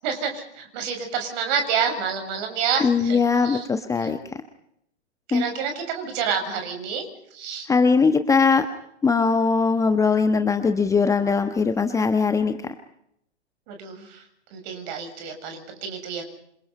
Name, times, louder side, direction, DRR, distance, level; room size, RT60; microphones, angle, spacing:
voice 1, 0.0-3.6 4.0-4.1 5.3-7.0 7.3-7.7 13.7-14.2 14.5-16.3, right 6 dB, 40° right, 5 dB, 7.5 m, -28 dB
voice 2, 2.8-4.2 5.3-5.4 7.7-8.7 9.0-12.7, left 5 dB, 10° left, 8 dB, 1.3 m, -20 dB
28.0 x 27.0 x 5.6 m, 0.74 s
figure-of-eight pair, 120°, 35 cm